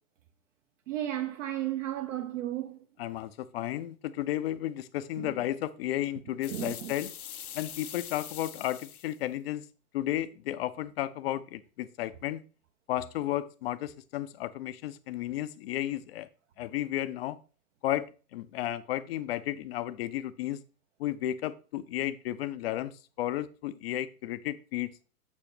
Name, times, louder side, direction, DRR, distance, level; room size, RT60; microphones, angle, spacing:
voice 1, 0.9-2.8 5.2-5.3 6.5-6.9, right 12 dB, 55° right, 0.8 m, -33 dB
voice 2, 3.0-7.1 7.5-9.7 9.9-12.4 12.9-16.3 16.6-17.4 17.8-20.6 21.0-24.9, left 13 dB, 40° left, 0.6 m, -33 dB
sound 1, 6.4-9.2, left 9 dB, 70° left, 0.8 m, -43 dB
7.1 x 6.8 x 3.2 m
figure-of-eight pair, 110°, 45 cm